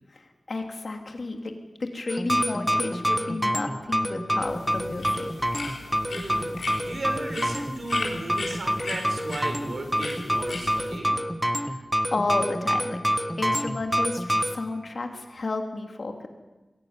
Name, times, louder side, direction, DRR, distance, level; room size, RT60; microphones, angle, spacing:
voice 1, 0.1-1.5 1.8-5.3 11.5-11.8 12.1-13.0 13.4-16.3, left 3 dB, 55° left, 4 dB, 2.8 m, -32 dB
sound 1, 2.1-14.6, equal, 5° right, 1.4 m, -27 dB
sound 2, 4.4-11.0, left 3 dB, 85° left, 3.9 m, -37 dB
voice 2, 6.1-6.5 6.8-11.2, right 2 dB, 65° right, 5 dB, 4.6 m, -35 dB
22.0 x 16.0 x 9.4 m, 1.2 s
wide cardioid pair, 100°, 0 cm